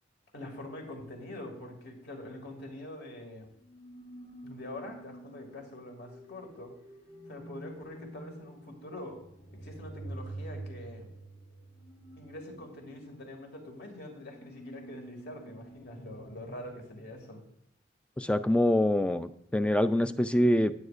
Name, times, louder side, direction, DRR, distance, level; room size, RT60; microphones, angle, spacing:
voice 1, 0.3-3.5 4.4-6.7 7.3-9.2 9.5-11.1 12.2-17.4, left 1 dB, 60° left, 3 dB, 2.1 m, -44 dB
sound 1, 3.6-17.4, right 1 dB, 40° left, 1.1 m, -48 dB
voice 2, 18.2-20.7, left 1 dB, 5° left, 12 dB, 0.3 m, -25 dB
16.0 x 8.6 x 2.5 m, 0.71 s
head